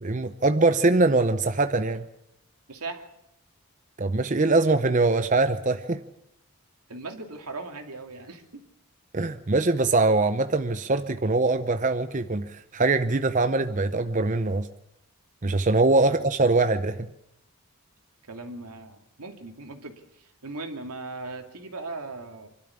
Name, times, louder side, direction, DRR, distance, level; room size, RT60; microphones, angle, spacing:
voice 1, 0.0-2.1 4.0-6.0 9.1-14.7 15.4-17.1, right 3 dB, 35° right, 9 dB, 0.7 m, -23 dB
voice 2, 2.7-3.1 6.9-8.6 16.0-16.2 18.3-22.5, right 3 dB, 90° right, 4 dB, 2.6 m, -38 dB
25.5 x 12.5 x 8.5 m, 0.83 s
head